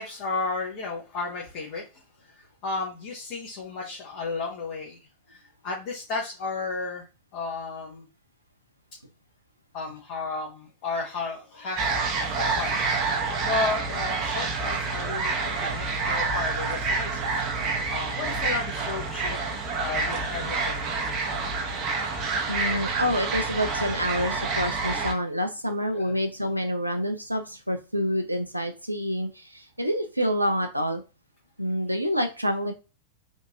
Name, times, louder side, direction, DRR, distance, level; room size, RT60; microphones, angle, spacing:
voice 1, 0.0-5.0 5.3-7.0 7.3-8.1 9.7-17.4 17.9-20.8 25.9-26.1, left 3 dB, 45° left, -2 dB, 0.9 m, -33 dB
sound 1, 11.8-25.1, right 4 dB, 35° right, 0.8 m, -28 dB
voice 2, 22.5-31.0 31.6-32.7, equal, 85° right, 6 dB, 0.4 m, -27 dB
3.5 x 2.5 x 2.6 m, 0.31 s
figure-of-eight pair, 90°, 0 cm